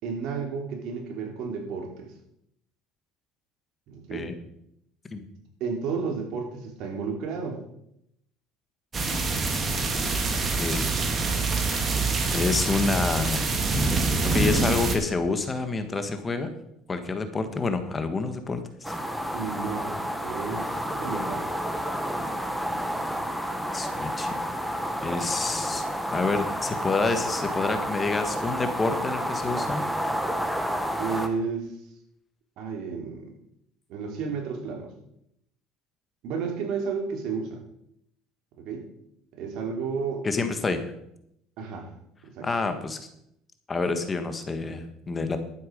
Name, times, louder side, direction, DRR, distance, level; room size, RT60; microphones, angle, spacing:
voice 1, 0.0-2.1 3.9-4.3 5.6-7.6 11.7-12.1 19.3-19.9 20.2-21.5 31.0-31.7 32.6-33.3 33.9-34.9 36.2-37.6 38.6-38.9 39.4-40.3 41.6-41.9 42.2-42.5, right 5 dB, 65° right, 2 dB, 3.3 m, -32 dB
sound 1, 8.9-15.0, right 3 dB, 30° right, 2.3 m, -25 dB
voice 2, 12.3-13.4 14.3-16.5 16.9-18.9 23.7-24.3 25.0-25.8 26.1-29.8 40.2-40.8 42.4-43.0 43.7-45.4, left 3 dB, 25° left, 8 dB, 1.6 m, -28 dB
sound 2, 18.8-31.3, equal, ahead, 1.5 m, -30 dB
12.0 x 9.4 x 5.3 m, 0.77 s
supercardioid pair, 100°, 0 cm